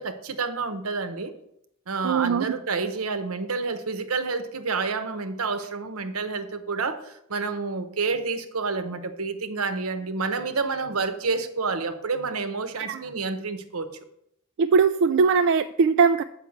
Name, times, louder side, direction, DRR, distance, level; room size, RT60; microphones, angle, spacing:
voice 1, 0.0-1.3 1.9-13.9, right 4 dB, 80° right, 9 dB, 1.0 m, -29 dB
voice 2, 2.0-2.5 12.8-13.0 14.6-16.2, right 5 dB, 60° right, 9 dB, 0.3 m, -20 dB
7.9 x 5.6 x 7.2 m, 0.78 s
head